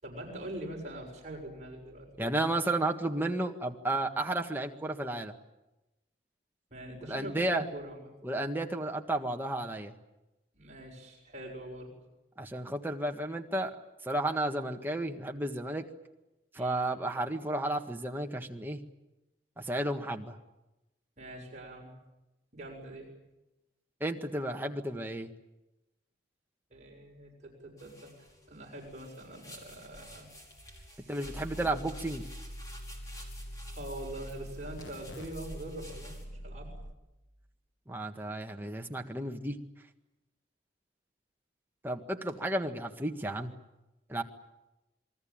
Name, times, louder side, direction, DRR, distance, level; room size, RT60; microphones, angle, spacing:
voice 1, 0.0-2.5 6.7-8.1 10.5-11.9 16.6-16.9 21.2-21.9 22.5-23.1 26.7-30.3 30.9-31.1 33.7-36.1 36.4-36.7, right 1 dB, 40° right, 0 dB, 6.7 m, -44 dB
voice 2, 2.2-5.3 7.1-7.6 8.2-9.9 12.4-13.7 14.0-15.9 16.5-18.8 19.6-20.4 24.0-25.3 31.1-32.2 37.9-39.6 41.8-43.5 44.1-44.2, right 1 dB, 10° right, 3 dB, 1.7 m, -32 dB
sound 1, 27.8-36.2, equal, 20° left, 5.2 m, -52 dB
sound 2, 31.2-36.9, equal, 80° left, 1.6 m, -44 dB
28.0 x 21.5 x 8.9 m, 0.98 s
head